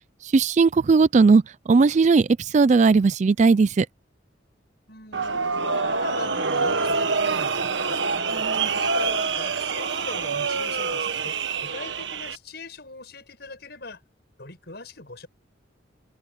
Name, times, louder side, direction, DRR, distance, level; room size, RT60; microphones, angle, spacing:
voice 1, 0.3-1.4 1.7-2.3 2.5-3.9 8.3-8.7, right 4 dB, 40° right, 0.4 m, -17 dB
voice 2, 4.9-8.0 8.6-11.4 11.6-14.0 14.4-15.3, left 2 dB, 60° left, 7.6 m, -41 dB
sound 1, 5.1-12.4, right 4 dB, 75° right, 1.4 m, -26 dB
head